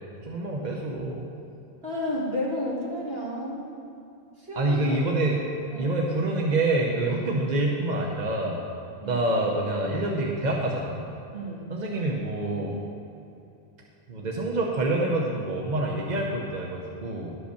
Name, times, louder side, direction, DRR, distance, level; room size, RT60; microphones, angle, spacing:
voice 1, 0.2-1.3 4.6-5.4 5.8-8.6 9.1-11.1 11.7-12.8 14.1-17.4, right 2 dB, 45° right, -1 dB, 1.0 m, -26 dB
voice 2, 1.8-3.7 4.4-4.8 5.7-6.0 9.0-9.2 11.3-11.7, left 1 dB, 70° right, -5 dB, 2.4 m, -31 dB
11.5 x 5.2 x 6.8 m, 2.8 s
omnidirectional pair, 1.1 m